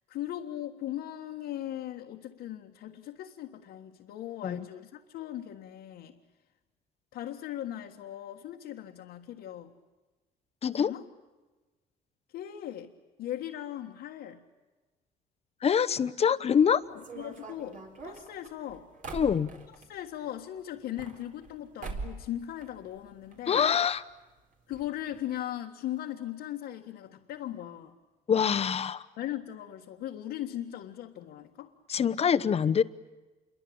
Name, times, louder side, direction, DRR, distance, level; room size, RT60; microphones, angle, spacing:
voice 1, 0.1-6.1 7.1-9.7 10.7-11.0 12.3-12.9 13.2-14.4 16.9-18.9 19.9-23.7 24.7-27.9 29.2-31.7, left 12 dB, 75° left, -1 dB, 1.6 m, -38 dB
voice 2, 15.6-16.8 19.1-19.5 23.5-24.0 28.3-29.1 31.9-32.8, left 7 dB, 35° left, 12 dB, 0.9 m, -25 dB
sound 1, 17.0-19.9 20.7-21.5 21.8-22.3 22.6-23.4 23.6-23.7 23.9-24.0 24.7-24.8 25.1-25.3, right 4 dB, 50° right, 4.2 m, -42 dB
27.5 x 23.0 x 8.7 m, 1.2 s
cardioid pair, 110°, 17 cm